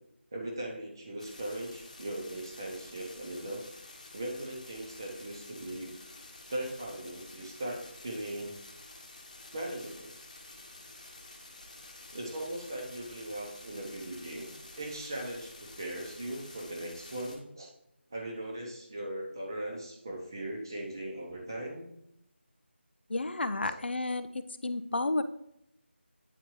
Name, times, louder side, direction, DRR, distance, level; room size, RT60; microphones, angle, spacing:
voice 1, 0.3-3.6 4.1-5.9 6.5-8.6 9.5-10.2 12.1-14.5 14.8-17.7 18.1-21.9 23.6-23.8, right 1 dB, 20° right, 0 dB, 0.8 m, -39 dB
sound 1, 1.2-17.4, left 2 dB, 35° left, 1.1 m, -50 dB
voice 2, 23.1-25.2, left 2 dB, 60° left, 11 dB, 0.4 m, -32 dB
8.8 x 4.3 x 3.1 m, 0.79 s
figure-of-eight pair, 175°, 7 cm